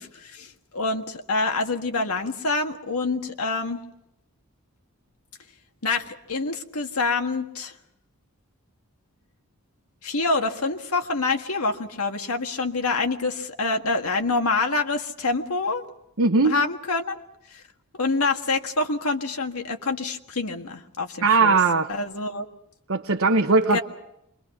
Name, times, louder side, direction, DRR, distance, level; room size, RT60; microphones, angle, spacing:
voice 1, 0.0-3.8 5.8-7.7 10.0-15.9 16.4-17.2 17.5-17.6 17.9-21.6 21.9-22.5 23.7-23.8, left 3 dB, 85° left, 5 dB, 1.7 m, -26 dB
voice 2, 16.2-16.6 21.2-21.9 22.9-23.8, right 4 dB, 65° right, 4 dB, 1.0 m, -19 dB
27.0 x 23.0 x 6.0 m, 0.83 s
head